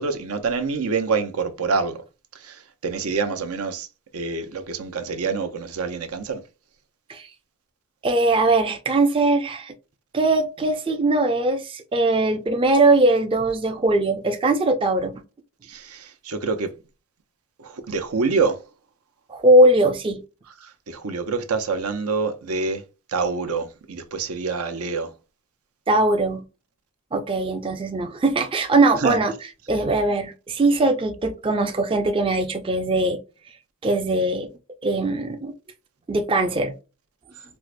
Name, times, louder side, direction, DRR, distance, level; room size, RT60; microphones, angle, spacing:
voice 1, 0.0-2.0 2.3-3.9 4.1-6.4 15.7-16.7 17.6-18.6 20.6-22.8 23.1-25.1 29.0-29.2, right 4 dB, 80° right, 0.6 m, -26 dB
voice 2, 8.0-9.7 10.1-15.1 19.3-20.2 25.9-26.4 27.1-29.3 29.7-33.2 33.8-34.5 34.8-35.5 36.1-36.7, right 2 dB, 25° right, 0.4 m, -20 dB
4.5 x 2.1 x 2.5 m
head